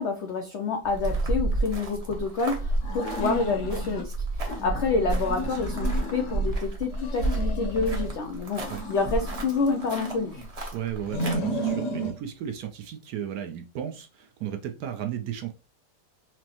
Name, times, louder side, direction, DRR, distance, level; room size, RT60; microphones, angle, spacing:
voice 1, 0.0-10.4, left 4 dB, 85° left, 0.6 m, -28 dB
sound 1, 0.8-11.4, right 2 dB, 35° right, 0.6 m, -31 dB
sound 2, 2.8-4.1 4.5-6.5 6.9-8.2 8.6-10.5 11.0-12.2, right 1 dB, 60° left, 0.9 m, -34 dB
voice 2, 10.7-15.5, right 9 dB, 70° right, 0.9 m, -35 dB
6.0 x 2.0 x 2.8 m
omnidirectional pair, 1.8 m